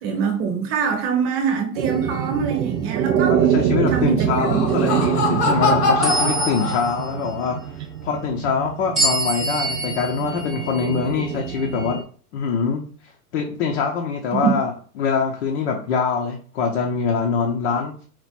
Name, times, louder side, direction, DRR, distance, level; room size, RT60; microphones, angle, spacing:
voice 1, 0.0-3.3 3.9-4.6 14.3-14.6, right 6 dB, 25° right, 3 dB, 1.0 m, -24 dB
sound 1, 1.8-2.3 2.9-3.2 6.0-7.1 9.0-12.0, right 2 dB, ahead, 0.3 m, -27 dB
sound 2, 1.8-12.0, right 9 dB, 85° right, 0.7 m, -25 dB
voice 2, 3.3-12.0 12.3-14.7 15.0-18.0, left 5 dB, 45° left, 2 dB, 0.7 m, -24 dB
Laughter, 4.1-7.3, left 4 dB, 70° left, 1.5 m, -23 dB
4.7 x 2.4 x 4.1 m, 0.44 s
hypercardioid pair, 150°, 48 cm